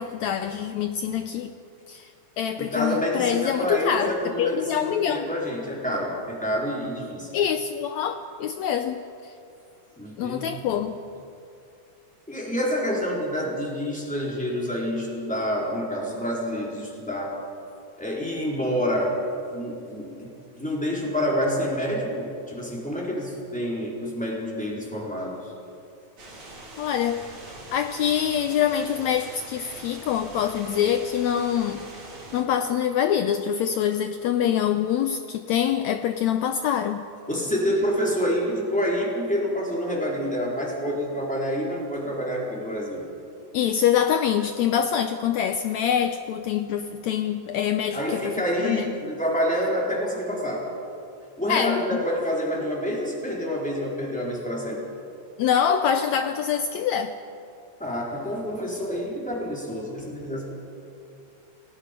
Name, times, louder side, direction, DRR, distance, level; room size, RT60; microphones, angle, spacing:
voice 1, 0.0-1.6 1.9-2.1 2.4-5.3 7.3-9.3 10.2-11.0 26.8-31.9 32.3-37.1 43.5-48.3 48.6-48.9 51.5-51.9 55.4-57.2, left 9 dB, 80° left, 8 dB, 1.6 m, -25 dB
voice 2, 2.6-7.3 10.0-10.5 12.3-17.4 18.0-19.2 19.5-25.5 37.3-43.0 47.9-50.7 51.4-54.8 57.8-60.5, equal, ahead, -4 dB, 4.1 m, -28 dB
sound 1, 26.2-32.4, right 2 dB, 40° right, 3.7 m, -43 dB
29.0 x 19.0 x 5.4 m, 2.6 s
omnidirectional pair, 4.0 m